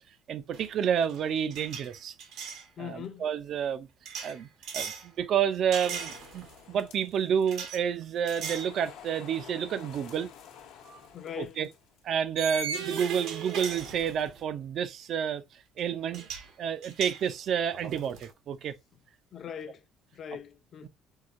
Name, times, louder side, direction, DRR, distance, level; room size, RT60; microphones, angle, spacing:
voice 1, 0.3-2.1 2.8-3.9 4.2-4.5 4.7-10.3 11.4-11.7 12.0-15.4 15.8-16.2 16.6-18.7 20.8-20.9, right 8 dB, 50° right, 0.5 m, -30 dB
sound 1, 0.5-0.8 1.0-2.6 4.0-5.1 5.7-6.6 7.5-7.8 8.3-8.7 9.2-9.3 10.9-11.0 12.4-14.4 15.8-15.9 16.1-16.5 16.8-18.3, right 6 dB, 70° right, 1.1 m, -38 dB
voice 2, 2.8-3.2 11.1-11.6 19.3-19.8 20.1-20.9, left 9 dB, 40° left, 0.5 m, -40 dB
sound 2, 5.9-7.9 8.1-12.0 12.7-14.0, left 8 dB, 85° left, 0.9 m, -52 dB
4.6 x 2.3 x 2.5 m
cardioid pair, 150°, 0 cm